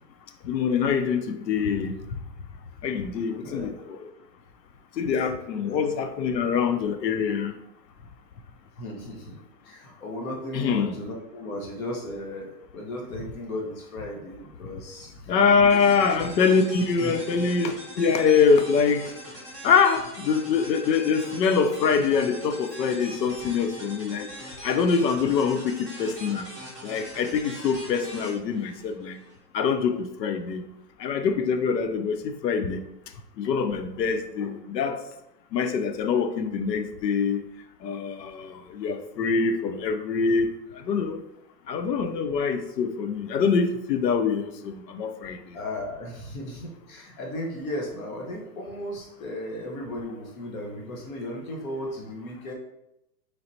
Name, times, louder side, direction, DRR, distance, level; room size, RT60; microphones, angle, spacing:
voice 1, 0.4-2.2 2.8-4.1 5.0-7.5 10.5-10.9 15.3-19.1 19.6-24.3 24.6-26.5 26.8-29.2 29.5-30.6 31.0-32.8 33.4-35.0 35.5-37.4 37.8-41.2 41.7-45.6, left 5 dB, 85° left, 8 dB, 0.6 m, -24 dB
voice 2, 3.3-3.7 5.6-5.9 8.8-9.4 9.7-15.9 17.0-17.1 34.4-34.5 45.5-52.5, left 1 dB, 55° left, 0 dB, 1.1 m, -36 dB
sound 1, 15.7-29.4, equal, 20° left, 0.4 m, -42 dB
4.0 x 3.2 x 2.7 m, 0.86 s
hypercardioid pair, 150°, 49 cm